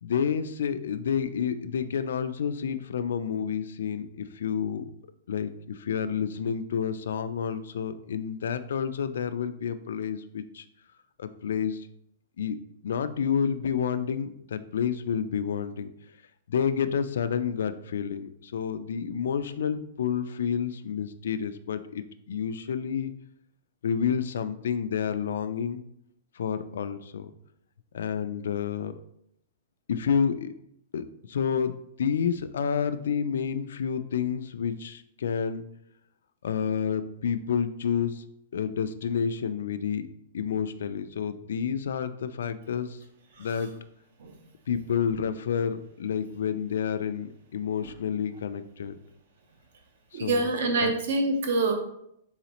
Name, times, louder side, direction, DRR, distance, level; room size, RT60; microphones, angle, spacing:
voice 1, 0.0-4.9 5.3-10.7 11.2-11.9 12.4-15.9 16.5-23.1 23.8-25.8 26.4-27.3 27.9-29.0 29.9-30.5 30.9-35.7 36.4-38.2 38.5-40.1 40.3-43.0 43.4-43.7 44.7-49.0 50.1-50.4 50.8-50.9, left 7 dB, 80° left, 11 dB, 0.3 m, -29 dB
voice 2, 50.1-51.7, right 2 dB, 55° right, 4 dB, 0.8 m, -26 dB
4.0 x 4.0 x 3.0 m, 0.75 s
hypercardioid pair, 170°, 0 cm